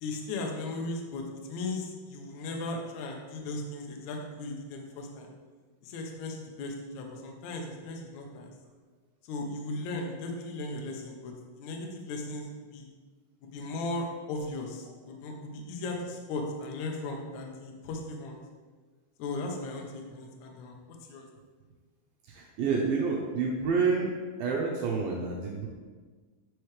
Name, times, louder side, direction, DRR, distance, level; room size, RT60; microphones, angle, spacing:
voice 1, 0.0-5.3 5.8-8.5 9.2-12.9 13.4-18.4 19.2-21.3, left 2 dB, 90° left, 1 dB, 1.6 m, -37 dB
voice 2, 22.2-24.1 24.4-25.7, right 5 dB, 80° right, -2 dB, 2.3 m, -28 dB
9.0 x 4.7 x 3.2 m, 1.4 s
omnidirectional pair, 4.5 m